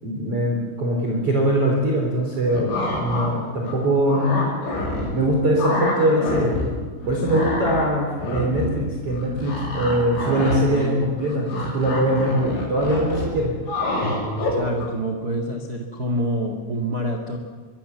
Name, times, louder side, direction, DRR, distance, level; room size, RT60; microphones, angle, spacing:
voice 1, 0.0-4.3 5.1-6.5 7.1-13.5, right 1 dB, 30° right, -2 dB, 4.4 m, -22 dB
sound 1, 2.5-3.3 3.7-5.3 5.6-6.7 7.0-14.9, left 1 dB, 75° left, 9.3 m, -27 dB
voice 2, 14.6-17.4, equal, 65° right, 3 dB, 0.9 m, -26 dB
24.0 x 23.5 x 7.2 m, 1.5 s
omnidirectional pair, 5.7 m